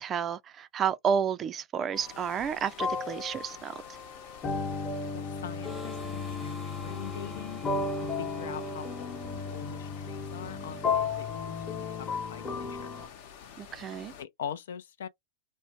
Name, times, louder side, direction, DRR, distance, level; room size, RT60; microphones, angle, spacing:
voice 1, 0.0-3.7 13.6-14.1, right 7 dB, 30° right, 0.4 m, -31 dB
sound 1, 1.9-14.2, left 7 dB, 55° left, 0.9 m, -49 dB
sound 2, 1.9-2.1 2.8-13.1, left 4 dB, 25° left, 1.0 m, -34 dB
voice 2, 5.1-7.6 8.0-12.9 14.2-15.1, left 8 dB, 70° left, 0.5 m, -43 dB
Harmonica, 5.6-10.1, left 3 dB, ahead, 0.7 m, -47 dB
2.6 x 2.1 x 3.3 m
hypercardioid pair, 100°, 0 cm